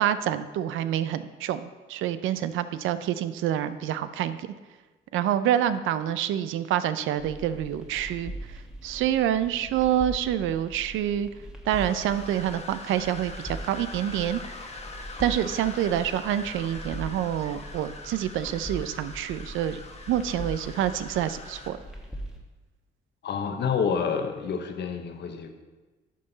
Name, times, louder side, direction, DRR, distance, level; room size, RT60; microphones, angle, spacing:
voice 1, 0.0-4.5 5.1-11.3 11.7-14.4 15.2-19.8 20.1-21.8, right 11 dB, 80° right, 13 dB, 0.4 m, -27 dB
sound 1, 7.2-22.4, equal, 5° right, 1.2 m, -41 dB
sound 2, 11.7-21.7, left 3 dB, 35° left, 1.0 m, -43 dB
voice 2, 23.2-25.5, left 6 dB, 60° left, 6 dB, 0.8 m, -28 dB
11.5 x 3.8 x 3.9 m, 1.2 s
cardioid pair, 90°, 20 cm